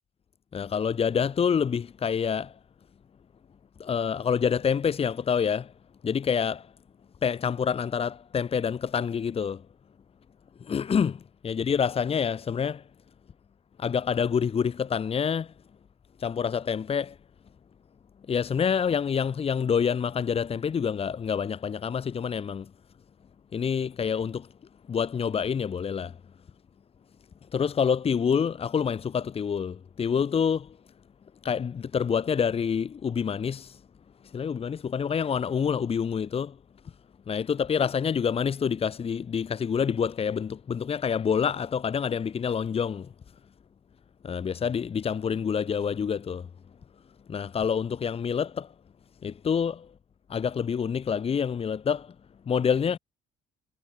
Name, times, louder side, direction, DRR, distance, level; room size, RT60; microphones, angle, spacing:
voice 1, 0.5-2.6 3.8-5.7 6.0-6.7 7.2-9.6 10.6-12.8 13.8-15.5 16.2-17.2 18.3-22.7 23.5-24.5 24.9-26.2 27.5-30.8 31.4-33.8 34.3-36.6 37.3-43.1 44.2-46.5 47.3-48.7 49.2-49.9 50.3-52.1 52.5-53.0, left 7 dB, 35° left, 1.6 m, -27 dB
cardioid pair, 110°, 17 cm